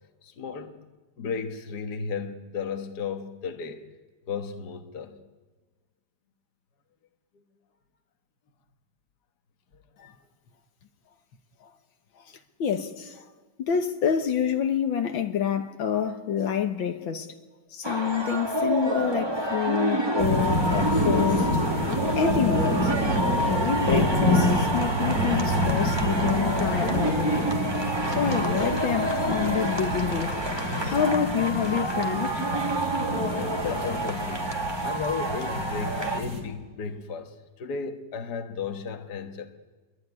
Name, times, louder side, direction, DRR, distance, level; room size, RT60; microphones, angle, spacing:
voice 1, 0.2-0.8 1.2-3.9 4.3-5.2 33.3-34.5 34.8-39.5, left 6 dB, 55° left, 1.9 m, -34 dB
voice 2, 12.6-13.2 13.6-17.3 17.7-21.8 22.2-23.0 23.4-27.5 28.1-30.3 30.8-32.4, left 7 dB, 80° left, 2.0 m, -27 dB
sound 1, 17.8-36.2, right 1 dB, 15° right, 1.9 m, -28 dB
sound 2, 20.2-36.4, equal, 45° right, 4.2 m, -28 dB
25.0 x 23.0 x 9.7 m
omnidirectional pair, 2.1 m